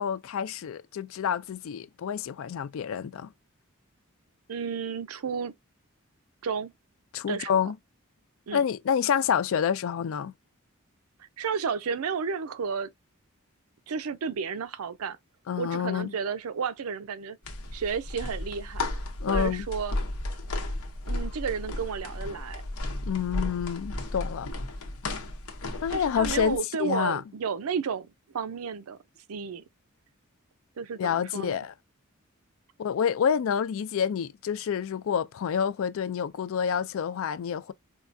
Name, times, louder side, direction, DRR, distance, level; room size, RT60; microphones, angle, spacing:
voice 1, 0.0-3.3 7.1-7.8 8.5-10.3 15.5-16.1 19.2-19.7 23.0-24.5 25.8-27.2 31.0-31.7 32.8-37.7, left 7 dB, 65° left, 0.3 m, -28 dB
voice 2, 4.5-5.5 6.4-6.7 7.3-7.5 8.5-8.6 11.4-12.9 13.9-15.2 15.6-17.4 17.7-18.8 19.3-20.0 21.0-22.6 25.9-29.0 29.3-29.6 30.8-31.6, right 6 dB, 80° right, 0.5 m, -32 dB
sound 1, 17.4-26.6, left 2 dB, 80° left, 0.8 m, -34 dB
4.5 x 2.3 x 2.5 m
head